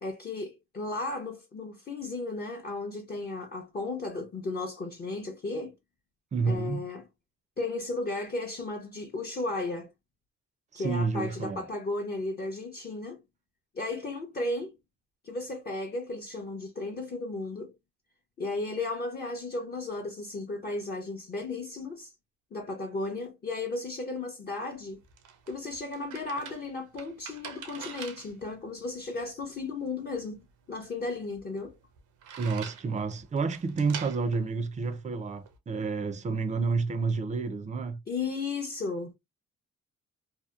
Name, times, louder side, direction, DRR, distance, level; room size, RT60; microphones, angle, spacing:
voice 1, 0.0-5.7 6.5-7.0 7.6-9.9 10.7-13.2 13.7-14.7 15.2-17.7 18.4-22.1 22.5-25.0 25.5-30.4 30.7-31.8 38.1-39.1, left 2 dB, 35° left, 0.6 m, -34 dB
voice 2, 6.3-6.8 10.7-11.6 32.4-38.0, right 4 dB, 25° right, 0.4 m, -30 dB
sound 1, 24.7-35.6, right 7 dB, 80° right, 0.7 m, -47 dB
2.8 x 2.1 x 2.3 m
cardioid pair, 90°, 30 cm